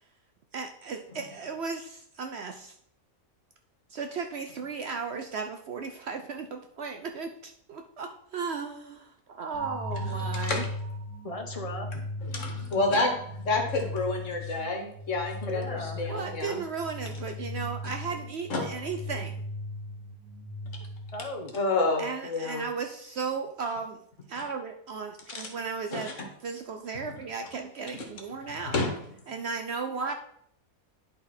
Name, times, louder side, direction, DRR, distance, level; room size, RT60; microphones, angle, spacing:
voice 1, 0.5-2.8 3.9-10.6 16.1-19.4 22.0-24.0 24.3-26.1 26.4-28.8 29.3-30.1, right 5 dB, 60° right, 5 dB, 0.8 m, -35 dB
sound 1, 9.5-21.5, left 1 dB, 85° right, 1.5 m, -37 dB
voice 2, 9.9-10.7 12.2-16.6 18.5-18.7 21.5-22.6 24.4-24.5 25.3-25.5 25.9-26.3 28.7-28.9, left 3 dB, 60° left, 2 dB, 1.6 m, -29 dB
voice 3, 11.2-11.9 15.4-16.0 21.1-21.5, left 2 dB, 30° left, 3 dB, 1.0 m, -36 dB
10.5 x 3.8 x 4.3 m, 0.68 s
omnidirectional pair, 1.5 m